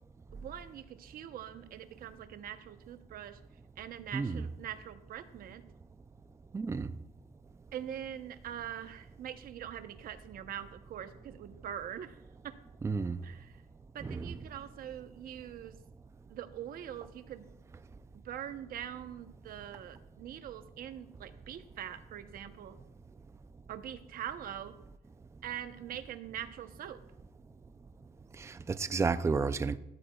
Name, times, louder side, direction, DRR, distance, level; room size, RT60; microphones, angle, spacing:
voice 1, 0.3-3.4 3.8-5.6 7.7-12.2 12.4-12.6 13.2-13.6 13.9-15.8 16.3-17.5 18.1-22.8 23.7-24.8 25.4-27.0, right 10 dB, 60° right, 0.9 m, -43 dB
voice 2, 4.1-4.4 6.5-6.9 12.8-13.2 14.0-14.3 28.4-29.8, right 4 dB, 15° right, 0.4 m, -32 dB
13.0 x 12.0 x 2.3 m
cardioid pair, 110°, 17 cm